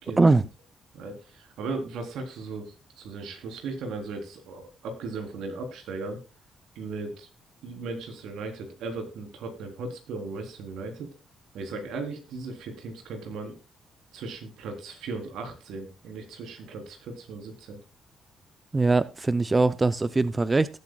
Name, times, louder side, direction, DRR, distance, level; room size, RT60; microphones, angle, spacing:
voice 1, 0.9-6.2 6.8-7.3 7.6-11.1 11.5-13.6 14.1-17.8, right 3 dB, 80° right, 4 dB, 3.8 m, -37 dB
voice 2, 18.7-20.7, right 3 dB, 25° right, 15 dB, 0.6 m, -21 dB
18.5 x 8.2 x 2.4 m, 0.29 s
cardioid pair, 90°, 0 cm